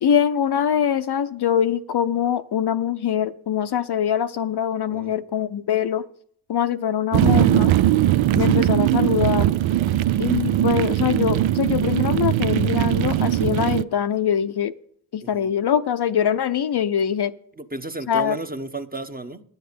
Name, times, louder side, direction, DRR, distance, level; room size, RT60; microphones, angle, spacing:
voice 1, 0.0-6.0 6.5-7.7 8.4-9.5 10.2-14.7 15.1-17.3 18.1-18.4, left 9 dB, 55° left, 0.6 m, -23 dB
sound 1, 7.1-13.8, right 13 dB, 70° right, 0.5 m, -20 dB
voice 2, 17.6-19.4, right 2 dB, 20° right, 1.0 m, -33 dB
9.9 x 8.0 x 6.6 m
supercardioid pair, 40°, 49 cm